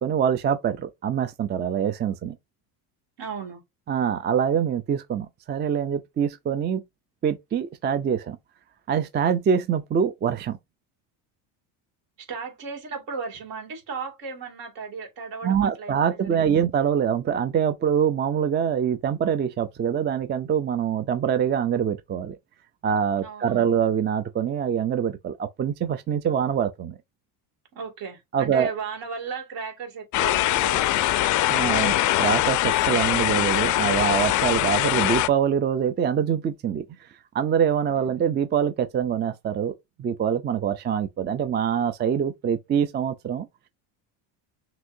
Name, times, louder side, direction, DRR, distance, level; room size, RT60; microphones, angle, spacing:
voice 1, 0.0-2.4 3.9-6.8 7.2-8.4 8.9-10.6 15.4-22.4 22.8-27.0 28.3-28.7 31.5-36.8 37.3-43.5, right 8 dB, 25° right, 0.4 m, -24 dB
voice 2, 3.2-3.6 12.2-16.6 23.2-23.7 27.7-31.4 37.9-38.2, right 5 dB, 65° right, 2.5 m, -36 dB
sound 1, 30.1-35.3, left 15 dB, 45° left, 0.4 m, -22 dB
6.0 x 2.9 x 2.6 m
supercardioid pair, 105°, 46 cm